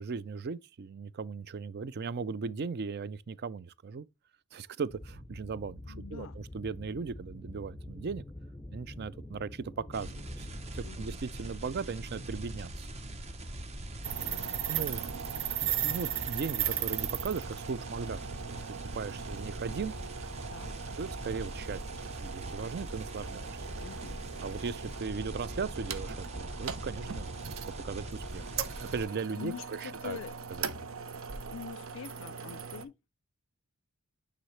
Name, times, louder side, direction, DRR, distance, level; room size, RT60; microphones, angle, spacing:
voice 1, 0.0-4.1 4.5-8.2 8.7-12.9 14.0-18.2 18.5-19.9 21.0-23.6 24.4-27.6 27.8-28.4 28.8-30.2 30.5-30.7, right 5 dB, 45° right, 0.4 m, -38 dB
sound 1, 4.9-12.0, left 1 dB, 10° left, 0.6 m, -47 dB
voice 2, 5.9-6.4 10.8-11.1 14.2-14.6 20.5-20.8 23.8-24.2 29.4-30.3 31.5-32.9, left 8 dB, 60° left, 0.3 m, -44 dB
sound 2, 9.9-29.1, right 1 dB, 30° right, 0.8 m, -42 dB
sound 3, 14.0-32.8, right 8 dB, 65° right, 0.8 m, -38 dB
9.1 x 4.0 x 3.1 m
head